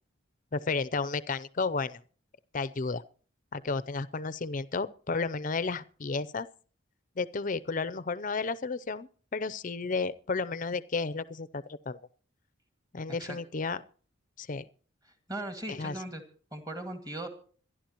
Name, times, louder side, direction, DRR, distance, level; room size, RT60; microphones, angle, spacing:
voice 1, 0.5-2.0 2.5-3.0 3.5-6.5 7.2-12.0 12.9-13.8 14.4-14.7 15.7-16.0, left 4 dB, 40° left, 0.5 m, -32 dB
voice 2, 15.3-16.2 16.5-17.3, right 1 dB, 20° right, 1.9 m, -38 dB
25.5 x 11.0 x 3.0 m
head